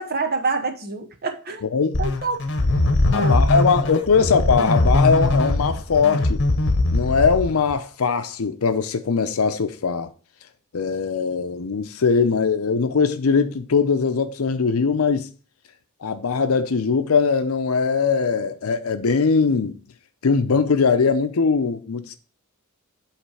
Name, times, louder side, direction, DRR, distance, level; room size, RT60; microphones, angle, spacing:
voice 1, 0.0-1.6 2.0-2.4 3.2-3.4, right 3 dB, 45° right, 0.9 m, -26 dB
voice 2, 1.6-2.0 3.1-6.4 6.9-10.1 10.7-15.3 16.0-19.8 20.2-22.2, left 5 dB, 75° left, 0.6 m, -21 dB
sound 1, 1.9-7.8, left 2 dB, 55° left, 1.0 m, -21 dB
8.3 x 3.3 x 4.8 m
head